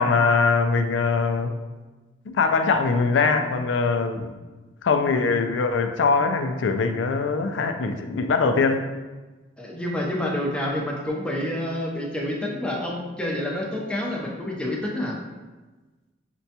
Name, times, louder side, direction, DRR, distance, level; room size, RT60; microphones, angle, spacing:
voice 1, 0.0-1.5 2.3-4.3 4.8-8.9, left 4 dB, 70° left, 6 dB, 0.4 m, -22 dB
voice 2, 9.6-15.2, left 1 dB, 5° left, -2 dB, 0.6 m, -28 dB
6.0 x 2.2 x 2.8 m, 1.2 s
head